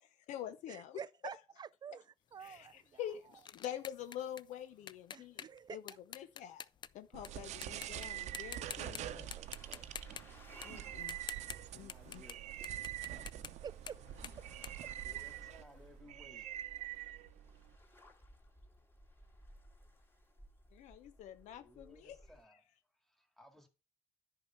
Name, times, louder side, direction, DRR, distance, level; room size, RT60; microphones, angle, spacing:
voice 1, 0.0-1.0 2.4-5.8 6.1-6.7 6.9-9.3 10.6-11.2 11.7-12.2 20.7-22.2, left 11 dB, 75° left, 0.7 m, -46 dB
voice 2, 0.7-3.0 5.1-5.8 9.1-9.9 13.6-14.0 14.4-14.5, right 7 dB, 35° right, 0.4 m, -49 dB
sound 1, 2.4-7.3 7.6-8.1 8.3-9.0 9.3-12.4 12.6-15.6, left 8 dB, 35° left, 0.5 m, -49 dB
sound 2, 7.1-17.7, right 12 dB, 65° right, 0.7 m, -45 dB
sound 3, 8.5-22.4, equal, 20° left, 2.7 m, -60 dB
voice 3, 11.8-12.4 12.7-13.1 15.0-16.6 21.4-22.6 22.9-23.7, left 1 dB, ahead, 2.0 m, -61 dB
10.5 x 4.8 x 5.8 m
cardioid pair, 100°, 13 cm